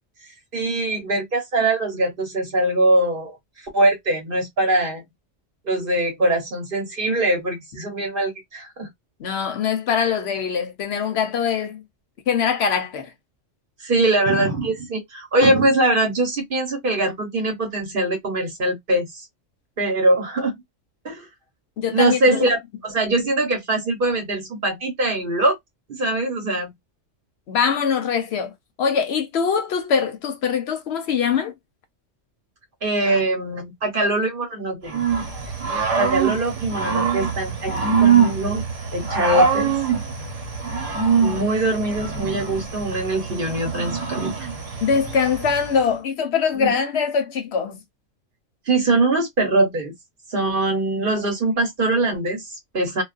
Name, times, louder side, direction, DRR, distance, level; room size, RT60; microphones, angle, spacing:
voice 1, 0.5-3.4 3.7-5.0 5.6-8.9 13.8-19.3 19.8-20.6 21.0-21.3 21.9-25.6 25.9-26.7 32.8-35.1 36.0-38.6 38.9-39.7 41.2-44.5 46.6-46.7 48.7-49.9 50.3-53.0, right 2 dB, 50° right, 1.0 m, -22 dB
voice 2, 9.2-11.8 12.3-13.1 21.8-22.5 27.5-28.5 28.8-31.5 44.8-47.8, left 6 dB, 65° left, 0.9 m, -22 dB
Growling / Cricket, 34.9-45.8, right 6 dB, 75° right, 1.2 m, -23 dB
2.4 x 2.2 x 2.3 m
omnidirectional pair, 1.3 m